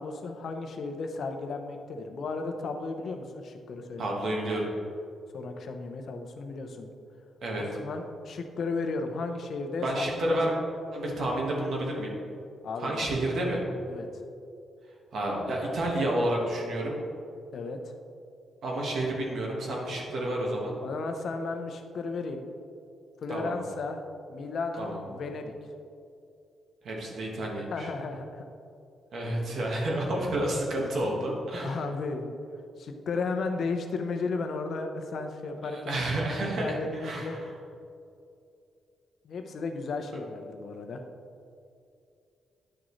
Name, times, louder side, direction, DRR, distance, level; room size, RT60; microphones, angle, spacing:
voice 1, 0.0-4.2 5.3-6.9 7.6-10.4 12.6-13.1 13.9-14.2 17.5-17.9 20.8-22.4 23.2-24.0 24.3-25.5 27.7-28.4 30.8-30.9 31.5-32.3 32.8-36.0 36.6-37.3 39.2-41.0, left 3 dB, 55° left, 5 dB, 0.8 m, -34 dB
voice 2, 4.0-4.7 7.4-7.6 9.8-10.5 10.9-12.1 12.8-13.6 15.1-16.9 18.6-20.7 23.3-23.5 24.8-25.0 26.8-27.9 29.1-31.8 35.6-37.4, right 1 dB, 60° right, -2 dB, 1.6 m, -30 dB
10.0 x 6.3 x 3.2 m, 2.5 s
cardioid pair, 120°, 0 cm